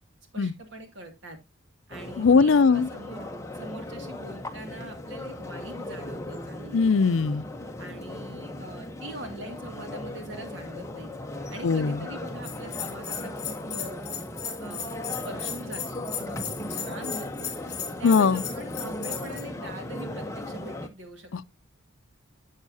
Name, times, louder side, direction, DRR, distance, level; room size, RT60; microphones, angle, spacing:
voice 1, 0.3-1.4 1.9-3.3 3.5-6.8 7.8-11.1 11.5-14.0 14.6-17.5 18.0-21.3, right 1 dB, 65° right, 2.1 m, -42 dB
sound 1, 1.9-20.9, left 1 dB, 15° left, 0.8 m, -37 dB
voice 2, 2.2-2.9 6.7-7.4 11.6-12.1 18.0-18.4, left 5 dB, 70° left, 0.4 m, -20 dB
Bell, 12.4-19.4, left 8 dB, 35° left, 2.7 m, -36 dB
11.0 x 7.4 x 2.7 m
head